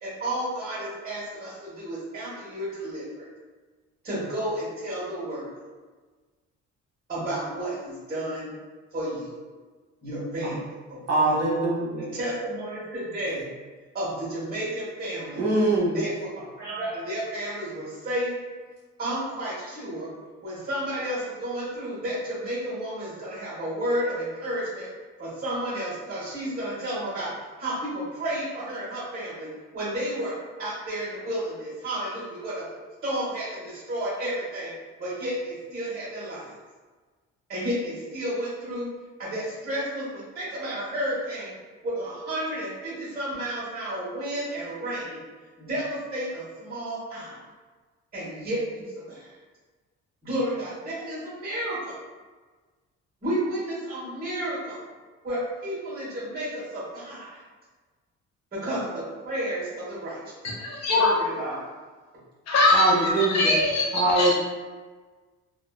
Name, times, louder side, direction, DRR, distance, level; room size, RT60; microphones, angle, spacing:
voice 1, 0.0-3.3 4.0-5.5 7.1-8.5 8.9-9.3 10.0-11.4 12.0-13.5 13.9-15.5 15.9-18.3 19.0-20.1 20.4-24.9 25.2-27.3 27.6-29.5 29.7-32.6 33.0-34.7 35.0-36.5 37.5-38.9 39.2-41.5 41.8-45.2 45.6-47.4 48.1-49.3 50.2-52.0 53.2-54.8 55.2-57.4 58.5-60.2 60.9-61.6, right 1 dB, 30° right, -9 dB, 1.3 m, -32 dB
voice 2, 11.1-12.1 15.3-16.0 62.7-63.5 63.9-64.3, right 2 dB, 55° right, -5 dB, 1.1 m, -23 dB
voice 3, 60.6-61.1 62.5-64.3, left 2 dB, 60° left, -3 dB, 0.7 m, -22 dB
2.9 x 2.3 x 2.3 m, 1.4 s
cardioid pair, 90°, 30 cm